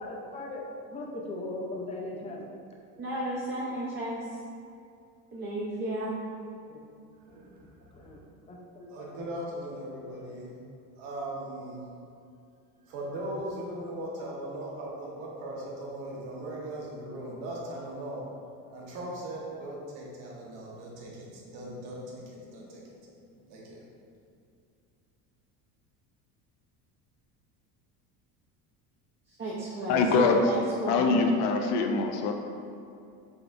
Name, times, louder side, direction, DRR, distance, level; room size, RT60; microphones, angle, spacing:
voice 1, 0.0-2.5 6.7-6.8 8.0-9.1, left 2 dB, 15° left, -1 dB, 0.5 m, -39 dB
voice 2, 3.0-4.2 5.3-6.2 29.4-31.2, right 1 dB, 25° right, -7 dB, 0.6 m, -33 dB
voice 3, 7.2-8.2 8.9-10.5 11.0-11.8 12.8-18.2 18.7-23.9, right 1 dB, 65° right, -3 dB, 1.1 m, -39 dB
voice 4, 29.9-30.4 30.9-32.4, left 4 dB, 70° left, 3 dB, 0.6 m, -24 dB
5.1 x 3.5 x 2.5 m, 2.5 s
cardioid pair, 125°, 41 cm